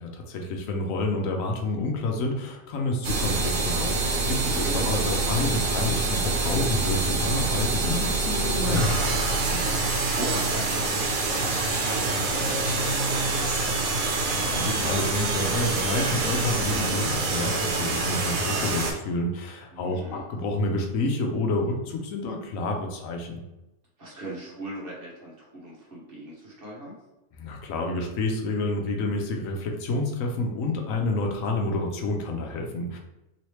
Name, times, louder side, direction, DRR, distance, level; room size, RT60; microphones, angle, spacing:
voice 1, 0.0-9.6 14.4-23.4 27.4-33.0, left 2 dB, 75° left, 2 dB, 1.0 m, -29 dB
sound 1, 3.0-18.9, right 3 dB, 85° right, 1.2 m, -26 dB
voice 2, 10.1-13.0 13.4-13.8 19.7-20.2 24.0-26.9, right 1 dB, 45° right, -4 dB, 1.1 m, -39 dB
3.1 x 3.0 x 3.1 m, 0.96 s
omnidirectional pair, 1.4 m